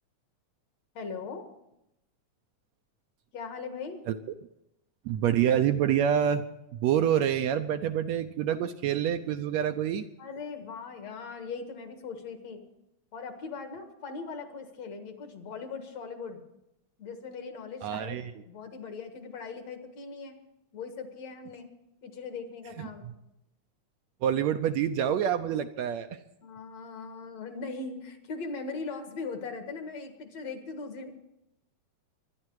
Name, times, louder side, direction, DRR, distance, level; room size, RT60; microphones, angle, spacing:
voice 1, 0.9-1.4 3.3-4.0 10.2-12.6 13.1-16.4 17.0-20.4 20.7-21.7 22.0-23.1 26.4-31.1, left 4 dB, 60° left, 6 dB, 2.7 m, -40 dB
voice 2, 5.1-6.4 6.8-10.1 17.8-18.3 22.8-22.9 24.2-26.1, right 9 dB, 75° right, 8 dB, 1.8 m, -26 dB
23.5 x 10.5 x 4.8 m, 0.85 s
omnidirectional pair, 3.5 m